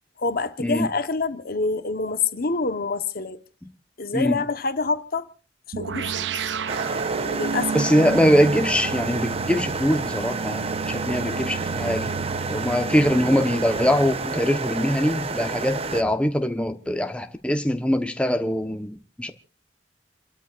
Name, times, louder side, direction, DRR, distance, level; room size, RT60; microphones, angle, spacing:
voice 1, 0.2-3.4 4.0-5.3 5.8-6.4 7.2-7.7, left 4 dB, 55° left, 1.1 m, -26 dB
sound 1, 5.7-14.5, right 5 dB, 75° right, 0.6 m, -32 dB
sound 2, 6.7-16.0, right 3 dB, 35° right, 0.9 m, -29 dB
voice 2, 7.7-12.1 12.5-19.3, equal, 5° left, 1.0 m, -22 dB
29.0 x 13.0 x 2.5 m
head